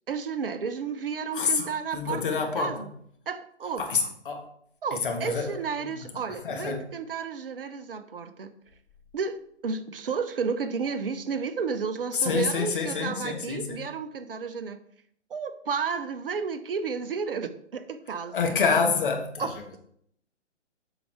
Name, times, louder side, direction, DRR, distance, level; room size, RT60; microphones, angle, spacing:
voice 1, 0.1-2.9 3.3-3.8 4.8-8.5 9.1-9.4 9.6-14.8 15.3-18.6 19.4-19.5, right 5 dB, 50° right, 0.9 m, -32 dB
voice 2, 1.3-1.6 1.9-2.9 3.8-4.4 4.9-5.9 6.4-6.8 12.1-13.8 18.3-19.5, left 5 dB, 45° left, 1.6 m, -27 dB
8.1 x 5.7 x 4.5 m
figure-of-eight pair, 130°, 35 cm